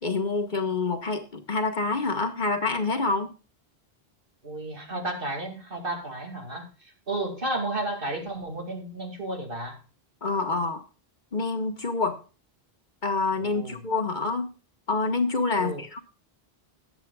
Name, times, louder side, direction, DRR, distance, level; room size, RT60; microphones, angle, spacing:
voice 1, 0.0-3.3 10.2-10.8 11.3-12.2 13.0-14.5 14.9-16.0, left 3 dB, 50° left, 6 dB, 1.5 m, -27 dB
voice 2, 4.4-9.8 13.4-13.8 15.5-15.8, right 2 dB, 60° right, 4 dB, 2.6 m, -33 dB
19.0 x 7.9 x 2.3 m, 0.34 s
omnidirectional pair, 1.0 m